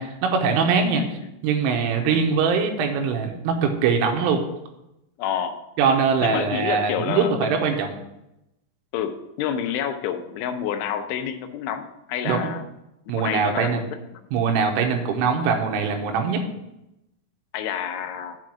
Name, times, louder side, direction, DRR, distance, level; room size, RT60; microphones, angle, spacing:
voice 1, 0.0-1.2 1.4-4.4 5.8-7.9 12.3-12.5 13.1-13.8 14.3-16.4, right 5 dB, 85° right, 3 dB, 3.4 m, -22 dB
voice 2, 0.9-1.3 2.1-2.3 5.2-5.6 6.2-7.7 8.9-12.6 13.1-14.2 17.5-18.4, left 9 dB, 80° left, 7 dB, 3.0 m, -29 dB
7.7 x 4.8 x 7.3 m, 0.88 s
omnidirectional pair, 5.7 m